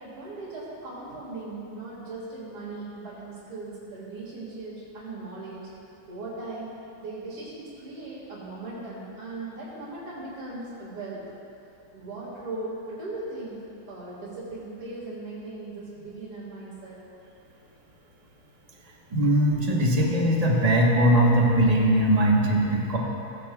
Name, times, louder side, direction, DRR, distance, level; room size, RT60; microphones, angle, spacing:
voice 1, 0.0-5.7 6.1-6.7 7.0-11.2 11.9-13.6 13.9-17.0, right 2 dB, 90° right, -11 dB, 2.9 m, -38 dB
voice 2, 19.1-23.0, right 1 dB, 30° right, -2 dB, 0.7 m, -20 dB
15.5 x 10.0 x 2.3 m, 2.8 s
omnidirectional pair, 2.3 m